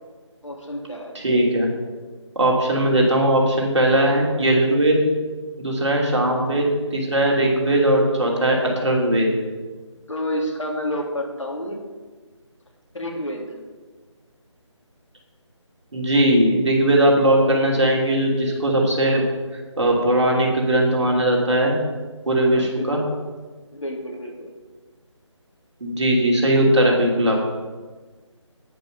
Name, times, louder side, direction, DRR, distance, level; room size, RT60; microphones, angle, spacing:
voice 1, 0.4-1.1 6.2-6.5 10.1-11.8 12.9-13.6 22.5-23.0 23.7-24.5, equal, 75° left, 0 dB, 2.9 m, -30 dB
voice 2, 1.1-1.7 2.4-5.0 5.6-9.3 15.9-19.2 19.8-21.8 22.3-23.0 25.8-27.4, right 1 dB, 65° right, -1 dB, 2.6 m, -19 dB
9.6 x 8.1 x 5.6 m, 1.4 s
figure-of-eight pair, 160°, 16 cm